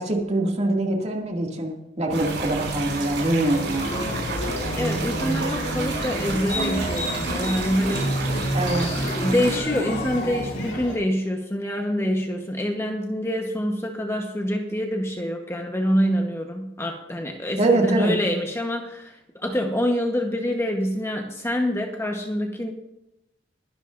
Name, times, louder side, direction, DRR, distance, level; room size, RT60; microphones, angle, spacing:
voice 1, 0.0-3.9 8.5-8.9 17.6-18.2, right 2 dB, 35° right, 0 dB, 2.3 m, -23 dB
small spring stream in the woods - rear, 2.1-9.6, right 3 dB, 70° right, 5.7 m, -31 dB
sound 1, 3.5-11.0, left 1 dB, 75° left, 4.5 m, -35 dB
sound 2, 3.7-10.7, equal, 40° left, 3.6 m, -29 dB
voice 2, 4.8-8.1 9.1-22.7, equal, 15° left, 2 dB, 1.1 m, -26 dB
22.0 x 11.5 x 2.6 m, 0.89 s
head